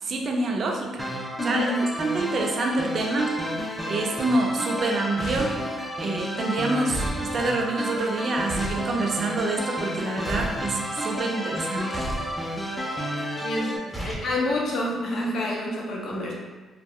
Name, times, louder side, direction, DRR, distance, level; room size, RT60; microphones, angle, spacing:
voice 1, 0.0-1.1 1.4-1.7 2.0-3.4 3.9-5.6 6.0-12.0, right 2 dB, 55° right, 2 dB, 0.4 m, -27 dB
sound 1, 1.0-13.8, equal, 5° left, 0.4 m, -31 dB
voice 2, 1.4-1.8 13.4-16.3, left 1 dB, 65° left, -3 dB, 0.6 m, -28 dB
sound 2, 5.2-5.7 6.9-7.2 8.5-8.9 10.2-10.6 11.9-12.3 13.9-14.3, right 1 dB, 10° right, 0.9 m, -31 dB
2.3 x 2.0 x 3.4 m, 1.3 s
cardioid pair, 90°, 0 cm